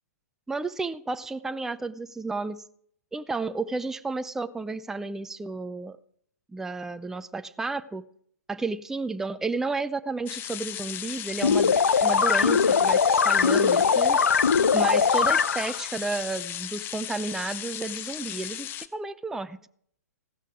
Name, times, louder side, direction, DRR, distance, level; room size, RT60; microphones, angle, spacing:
voice 1, 0.5-2.6 3.1-6.0 6.5-8.1 8.5-14.2 14.7-19.7, right 3 dB, 5° right, 0.5 m, -32 dB
sound 1, 10.3-18.9, left 12 dB, 25° left, 0.9 m, -36 dB
sound 2, 11.4-15.8, left 6 dB, 75° left, 0.8 m, -21 dB
16.0 x 13.0 x 4.9 m
figure-of-eight pair, 120°, 9 cm